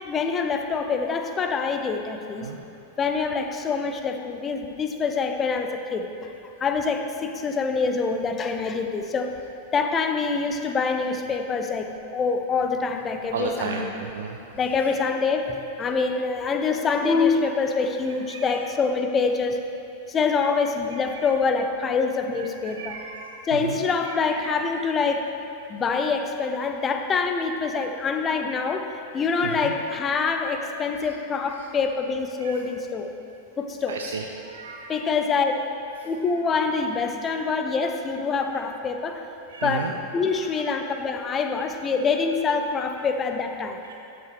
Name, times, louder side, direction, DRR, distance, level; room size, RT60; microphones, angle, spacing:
voice 1, 0.1-2.5 3.0-6.3 6.6-9.3 9.7-11.9 12.1-13.9 14.6-19.6 20.1-23.0 23.5-25.3 25.7-33.1 33.6-34.0 34.9-35.6 36.0-39.3 39.6-43.8, left 4 dB, 25° left, 5 dB, 0.6 m, -25 dB
voice 2, 13.3-14.4 18.1-18.7 21.1-21.3 22.3-23.8 24.0-24.9 29.3-29.7 31.1-31.2 31.5-31.7 32.4-32.6 33.9-35.1 36.0-36.1 36.7-36.8 37.3-37.5 39.5-39.9 40.3-40.9 43.0-43.1 43.8-43.9, right 5 dB, 65° right, 2 dB, 0.5 m, -35 dB
12.5 x 6.0 x 3.2 m, 2.7 s
figure-of-eight pair, 90°, 0 cm